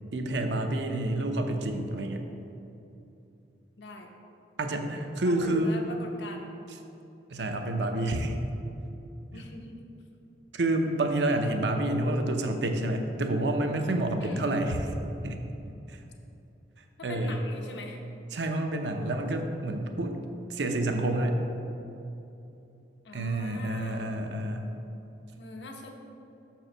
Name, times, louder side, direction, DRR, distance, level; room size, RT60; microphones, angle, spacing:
voice 1, 0.1-2.2 4.6-5.8 7.3-8.4 9.3-9.5 10.5-14.9 15.2-15.4 15.9-16.0 17.0-17.4 18.3-20.2 20.5-21.3 23.1-24.7, right 1 dB, 80° right, 5 dB, 0.7 m, -28 dB
voice 2, 3.8-4.1 4.7-6.5 9.3-9.9 14.2-14.5 17.0-18.0 23.0-24.1 25.4-25.9, left 2 dB, 80° left, 2 dB, 0.9 m, -42 dB
6.7 x 4.7 x 6.6 m, 2.8 s
head